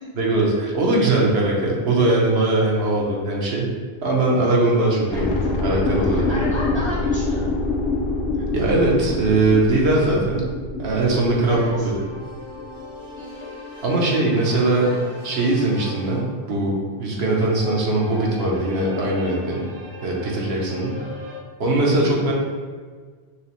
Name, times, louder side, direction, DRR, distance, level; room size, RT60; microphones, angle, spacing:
voice 1, 0.2-3.7 4.0-6.5 8.5-10.5 10.8-12.0 13.8-14.9 15.2-19.7 20.0-21.0 21.6-22.3, right 2 dB, 75° right, -3 dB, 1.0 m, -20 dB
sound 1, 5.1-12.9 13.2-13.3, left 2 dB, 80° left, 0.8 m, -26 dB
voice 2, 5.1-5.5 6.1-7.5 11.5-11.9 13.2-13.5 14.8-15.2 20.8-21.0 22.2-22.3, left 1 dB, 30° left, -7 dB, 0.6 m, -35 dB
sound 2, 10.8-16.4 17.3-21.4, left 2 dB, 25° right, 0.5 m, -40 dB
5.9 x 2.0 x 2.9 m, 1.5 s
omnidirectional pair, 1.0 m